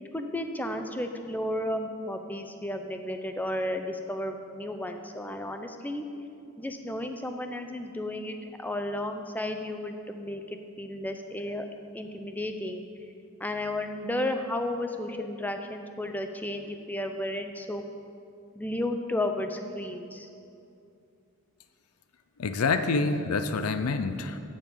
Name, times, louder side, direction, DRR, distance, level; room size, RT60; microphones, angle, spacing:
voice 1, 0.1-6.1 6.6-11.7 11.9-12.8 13.4-17.9 18.6-20.3, left 1 dB, 10° left, 6 dB, 0.5 m, -33 dB
voice 2, 22.4-24.4, left 4 dB, 85° left, 10 dB, 0.5 m, -27 dB
7.5 x 7.2 x 8.1 m, 2.6 s
head